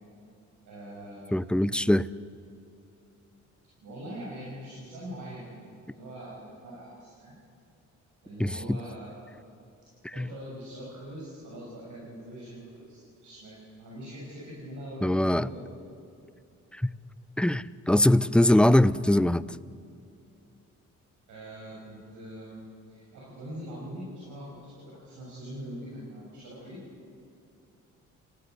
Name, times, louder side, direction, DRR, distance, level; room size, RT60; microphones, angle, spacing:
voice 1, 0.6-1.4 3.8-7.3 8.2-9.3 10.1-15.7 21.3-26.8, equal, 80° right, -5 dB, 7.0 m, -43 dB
voice 2, 1.3-2.1 8.4-8.8 10.0-10.3 15.0-15.5 16.7-16.9 17.4-19.4, left 1 dB, 5° left, 16 dB, 0.5 m, -22 dB
29.0 x 16.5 x 8.2 m, 2.6 s
cardioid pair, 90°, 30 cm